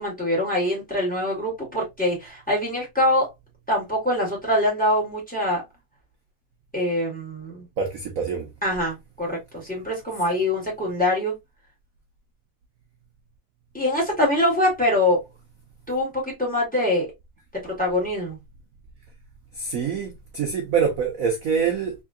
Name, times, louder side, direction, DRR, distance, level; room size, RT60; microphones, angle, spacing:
voice 1, 0.0-3.3 3.7-5.6 6.7-7.7 8.6-11.3 13.7-15.2 15.9-17.1 17.6-18.4, left 1 dB, 5° left, 2.0 m, -24 dB
voice 2, 7.8-8.5 19.6-21.9, right 6 dB, 65° right, 0.8 m, -25 dB
3.6 x 3.5 x 2.3 m
omnidirectional pair, 2.3 m